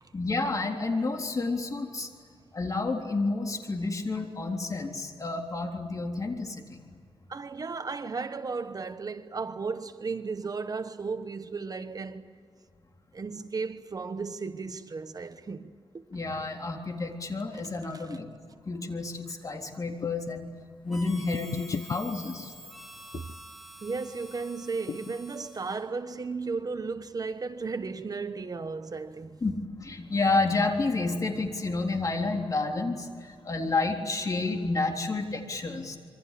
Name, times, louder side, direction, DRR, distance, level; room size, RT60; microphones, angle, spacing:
voice 1, 0.1-2.1 2.5-6.8 16.1-18.3 18.7-20.5 20.8-22.5 29.4-36.0, left 3 dB, 35° left, 3.7 m, -30 dB
voice 2, 7.3-12.3 13.1-16.1 17.9-18.0 21.5-21.6 23.8-29.4, right 4 dB, 40° right, 1.2 m, -35 dB
sound 1, 19.9-20.4 21.3-22.0 23.1-23.4 24.9-25.2, left 7 dB, 60° left, 0.6 m, -36 dB
Harmonica, 20.9-25.9, right 1 dB, ahead, 4.3 m, -48 dB
27.0 x 23.5 x 8.5 m
wide cardioid pair, 110°, 10 cm